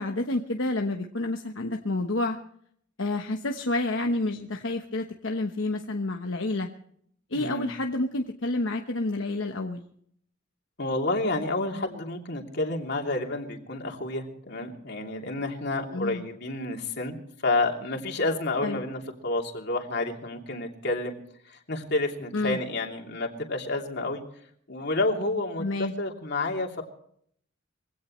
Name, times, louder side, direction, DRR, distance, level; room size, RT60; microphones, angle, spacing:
voice 1, 0.0-2.4 3.0-6.7 7.3-9.8 15.9-16.2 18.6-18.8 22.3-22.6 25.6-25.9, left 2 dB, 75° left, 3 dB, 1.1 m, -29 dB
voice 2, 7.3-7.7 10.8-17.2 17.4-21.1 21.5-24.2 24.7-26.8, left 2 dB, 60° left, 2 dB, 2.9 m, -29 dB
23.5 x 17.0 x 3.2 m, 0.65 s
head